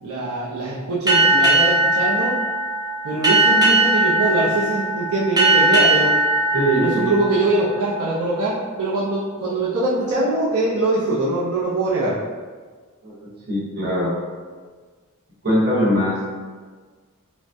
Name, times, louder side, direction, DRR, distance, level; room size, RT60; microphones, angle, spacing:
voice 1, 0.0-2.3 3.0-6.1 6.7-12.2, right 2 dB, 80° right, -8 dB, 0.6 m, -22 dB
Boat Water vehicle, 1.1-8.1, right 2 dB, 20° right, 0.5 m, -19 dB
voice 2, 6.5-7.1 13.0-14.2 15.4-16.2, equal, 45° right, -8 dB, 1.0 m, -21 dB
2.6 x 2.1 x 3.3 m, 1.5 s
head